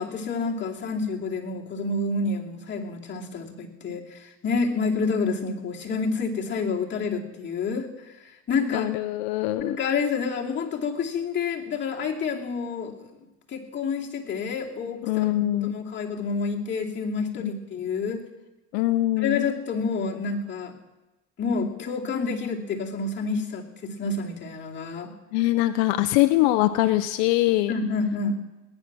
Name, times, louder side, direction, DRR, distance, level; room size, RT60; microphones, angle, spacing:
voice 1, 0.0-7.9 8.2-8.9 9.6-13.1 13.5-18.2 19.2-20.7 21.4-25.1 27.7-28.3, left 4 dB, 35° left, -2 dB, 2.8 m, -28 dB
voice 2, 8.7-9.8 15.0-15.8 18.7-19.5 25.3-27.7, left 16 dB, 75° left, 11 dB, 0.7 m, -23 dB
19.5 x 9.7 x 6.1 m, 1.0 s
supercardioid pair, 100°, 33 cm